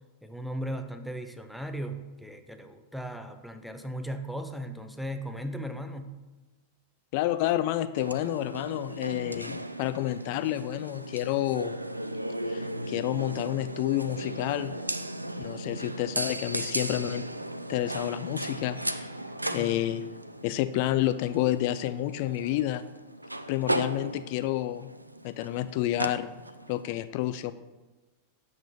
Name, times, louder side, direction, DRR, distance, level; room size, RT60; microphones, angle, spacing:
voice 1, 0.2-6.1 19.4-19.8, equal, ahead, 6 dB, 0.6 m, -37 dB
voice 2, 7.1-11.8 12.5-14.7 15.4-17.2 17.7-19.1 19.5-20.0 20.4-22.9 23.5-24.9 25.2-26.3 26.7-27.5, left 14 dB, 45° left, 13 dB, 0.3 m, -29 dB
sound 1, 8.0-26.9, right 1 dB, 85° right, 0.3 m, -36 dB
8.0 x 6.7 x 2.8 m, 1.2 s
figure-of-eight pair, 90°, 0 cm